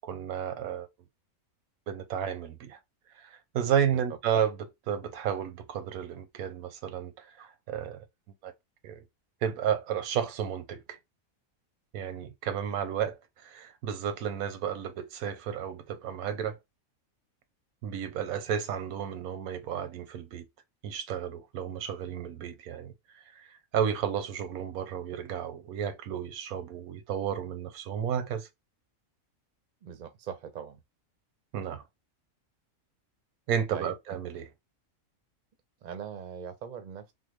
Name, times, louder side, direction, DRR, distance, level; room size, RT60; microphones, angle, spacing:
voice 1, 0.0-0.9 1.9-2.8 3.2-8.0 8.4-8.5 8.8-9.0 9.4-11.0 11.9-13.2 13.4-16.6 17.8-20.4 20.8-28.5 31.5-31.8 33.5-34.5, right 8 dB, 90° right, 1.1 m, -32 dB
voice 2, 29.8-30.8 33.7-34.2 35.8-37.1, right 8 dB, 50° right, 0.5 m, -40 dB
3.5 x 2.0 x 3.1 m
omnidirectional pair, 1.5 m